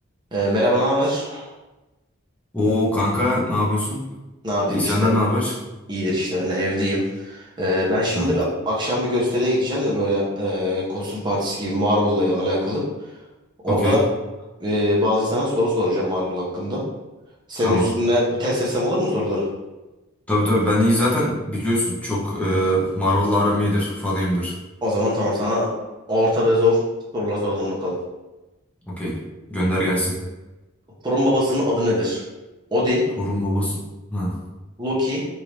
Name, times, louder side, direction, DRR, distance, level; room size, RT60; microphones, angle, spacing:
voice 1, 0.3-1.5 4.4-5.1 5.9-12.8 13.6-14.0 14.6-16.8 17.5-19.5 24.8-25.7 26.1-26.8 27.1-27.9 31.0-32.2 32.7-33.0 34.8-35.3, left 1 dB, 20° right, -5 dB, 0.7 m, -22 dB
voice 2, 2.5-4.0 4.7-5.6 8.1-8.4 13.7-14.0 17.6-17.9 20.3-24.5 28.9-29.2 29.5-30.2 33.2-33.8 34.1-34.4, left 1 dB, 5° left, -6 dB, 0.8 m, -22 dB
3.3 x 2.6 x 3.0 m, 1.1 s
head